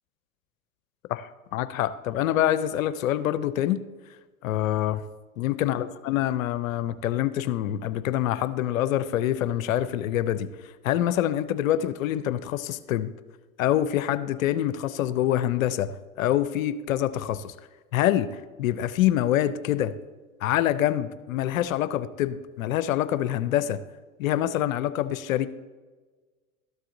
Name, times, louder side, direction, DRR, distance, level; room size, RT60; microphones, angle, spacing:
voice 1, 1.1-3.8 4.4-5.0 5.4-10.5 10.8-13.1 13.6-15.9 16.2-17.5 17.9-19.9 20.4-23.8 24.2-25.5, left 12 dB, 75° left, 14 dB, 0.6 m, -26 dB
13.0 x 7.4 x 2.6 m, 1.3 s
hypercardioid pair, 90°, 41 cm